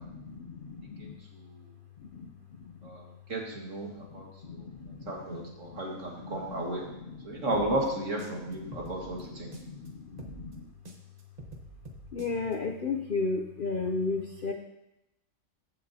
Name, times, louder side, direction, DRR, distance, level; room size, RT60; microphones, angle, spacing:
voice 1, 0.0-1.2 2.0-2.9 4.0-7.5 8.4-10.7 12.1-14.5, left 4 dB, 55° left, 4 dB, 0.6 m, -36 dB
voice 2, 1.0-1.7 2.8-6.8 7.2-9.5, right 1 dB, 60° right, -1 dB, 2.2 m, -34 dB
sound 1, 7.5-9.9 10.2-12.5, right 2 dB, 30° right, 1.1 m, -47 dB
15.0 x 6.8 x 2.8 m, 0.89 s
omnidirectional pair, 1.5 m